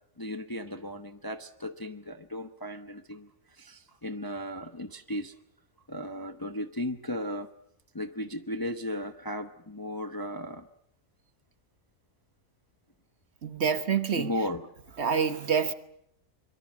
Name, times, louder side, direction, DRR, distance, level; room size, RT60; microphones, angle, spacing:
voice 1, 0.2-5.3 5.9-7.5 7.9-10.7 14.2-14.6 14.9-15.0, left 1 dB, 20° left, 8 dB, 0.8 m, -36 dB
voice 2, 13.4-14.3 15.0-15.7, right 6 dB, 50° right, 10 dB, 1.4 m, -27 dB
24.5 x 23.0 x 7.4 m, 0.76 s
omnidirectional pair, 1.5 m